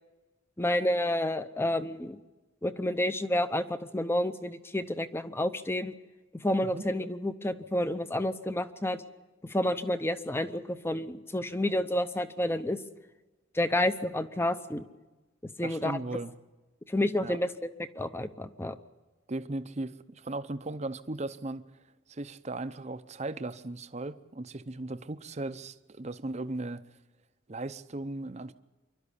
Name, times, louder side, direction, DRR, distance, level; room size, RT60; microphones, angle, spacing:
voice 1, 0.6-2.2 2.6-5.9 6.3-9.0 9.5-12.8 13.5-14.9 15.4-16.0 16.9-17.5 18.0-18.8, left 1 dB, 10° left, 0.7 m, -29 dB
voice 2, 15.6-16.3 17.2-17.4 19.3-21.7 22.1-26.8 27.5-28.5, right 2 dB, 35° right, 0.7 m, -37 dB
26.5 x 12.0 x 8.5 m
head